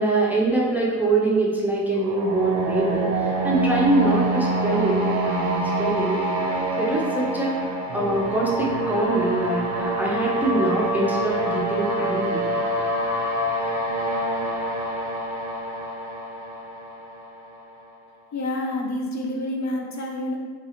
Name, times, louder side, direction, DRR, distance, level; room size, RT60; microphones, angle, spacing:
voice 1, 0.0-3.1 3.4-6.4 6.8-7.5 7.9-12.4, right 2 dB, 5° right, -4 dB, 0.5 m, -24 dB
sound 1, 2.0-17.8, right 2 dB, 50° right, 0.6 m, -26 dB
voice 2, 18.3-20.4, left 1 dB, 50° left, 0 dB, 0.5 m, -28 dB
3.7 x 2.4 x 2.9 m, 1.5 s
cardioid pair, 110°, 36 cm